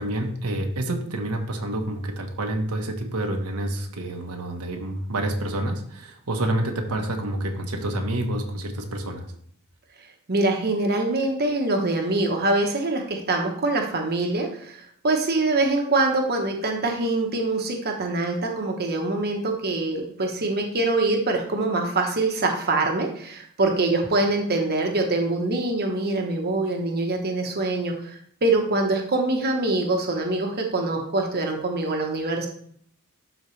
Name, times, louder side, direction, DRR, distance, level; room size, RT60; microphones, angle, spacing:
voice 1, 0.0-9.3, right 1 dB, 85° right, 3 dB, 1.1 m, -28 dB
voice 2, 10.3-32.5, right 2 dB, 45° right, 2 dB, 1.1 m, -24 dB
11.5 x 4.0 x 3.2 m, 0.63 s
head